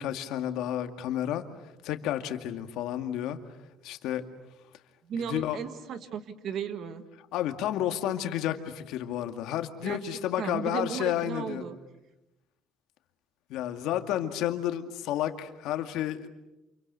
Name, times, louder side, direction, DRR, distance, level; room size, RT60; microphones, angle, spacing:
voice 1, 0.0-1.5 1.8-3.4 3.8-4.2 5.1-5.6 7.3-11.6 13.5-16.3, left 11 dB, 65° left, 7 dB, 2.2 m, -31 dB
voice 2, 5.1-7.0 9.8-10.0 10.4-11.8, right 7 dB, 45° right, 10 dB, 1.8 m, -35 dB
29.5 x 28.0 x 6.9 m, 0.95 s
cardioid pair, 180°, 0 cm